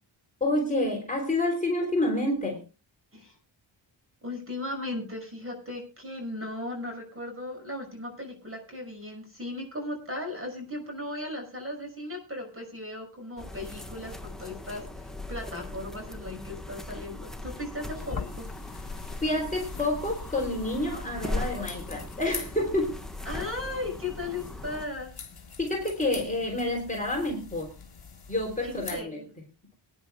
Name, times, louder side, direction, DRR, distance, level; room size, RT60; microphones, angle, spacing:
voice 1, 0.4-2.6 19.2-23.0 25.6-27.7 28.3-29.2, left 1 dB, 15° left, 0 dB, 3.3 m, -28 dB
voice 2, 4.2-18.5 23.2-25.1 28.6-29.2, left 2 dB, 25° right, 3 dB, 6.2 m, -37 dB
sound 1, 13.4-24.9, left 2 dB, ahead, 1.3 m, -39 dB
sound 2, 17.9-29.0, left 5 dB, 50° left, 3.2 m, -43 dB
25.5 x 10.0 x 2.3 m, 0.32 s
wide cardioid pair, 130°, 47 cm